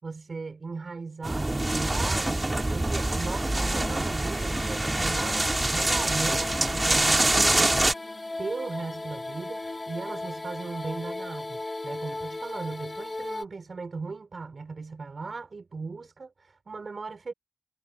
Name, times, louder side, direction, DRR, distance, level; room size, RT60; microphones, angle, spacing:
voice 1, 0.0-17.3, right 4 dB, 65° right, 5.3 m, -38 dB
sound 1, 1.2-7.9, right 2 dB, 25° right, 2.2 m, -25 dB
sound 2, 2.5-13.5, left 2 dB, 35° left, 1.3 m, -37 dB
wide cardioid pair, 85°, 0 cm